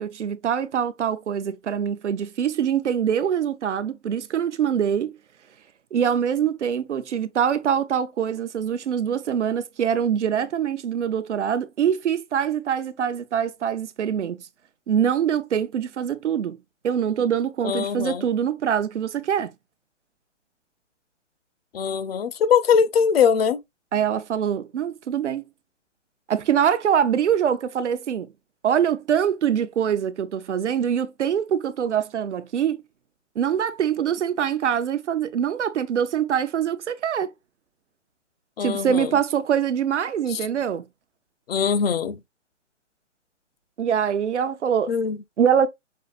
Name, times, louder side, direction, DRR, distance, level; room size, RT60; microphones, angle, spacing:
voice 1, 0.0-5.2 5.9-14.4 14.9-16.6 16.8-19.5 23.9-25.4 26.3-28.3 28.6-32.8 33.4-37.3 38.6-40.8 43.8-44.9 45.4-45.7, right 8 dB, 70° right, 0.7 m, -24 dB
voice 2, 17.6-18.3 21.7-23.6 38.6-39.1 40.3-40.4 41.5-42.2 44.9-45.2, left 7 dB, 55° left, 0.6 m, -21 dB
5.4 x 2.5 x 2.3 m
figure-of-eight pair, 135°, 37 cm